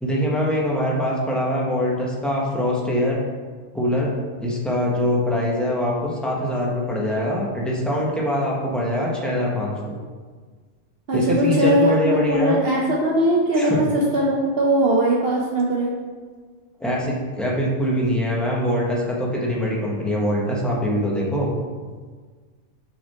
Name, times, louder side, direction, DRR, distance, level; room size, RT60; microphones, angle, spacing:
voice 1, 0.0-3.2 3.7-4.1 4.4-9.9 11.1-12.6 13.6-13.8 16.8-21.5, left 1 dB, ahead, -4 dB, 0.9 m, -23 dB
voice 2, 11.1-12.0 12.3-15.9, right 1 dB, 55° right, -3 dB, 0.8 m, -20 dB
5.8 x 4.0 x 4.2 m, 1.5 s
omnidirectional pair, 1.3 m